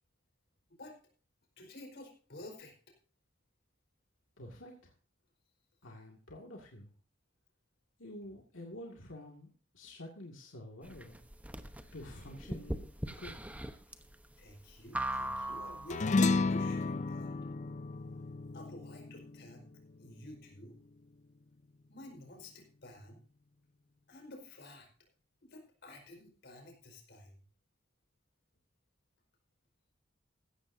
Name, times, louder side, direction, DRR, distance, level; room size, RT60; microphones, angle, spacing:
voice 1, 1.6-2.7 14.4-16.2 16.5-17.3 18.5-19.6 20.0-20.8 21.9-23.2 24.1-24.9 25.4-27.3, left 1 dB, 60° left, 3 dB, 4.9 m, -51 dB
voice 2, 4.4-4.9 5.8-6.9 8.0-11.2 11.9-12.9 13.2-13.5, left 1 dB, 90° left, 0 dB, 2.3 m, -49 dB
sound 1, 10.8-16.1, right 1 dB, 10° right, 1.0 m, -40 dB
sound 2, 15.9-20.6, left 3 dB, 40° left, 0.5 m, -33 dB
16.0 x 13.5 x 2.7 m, 0.41 s
head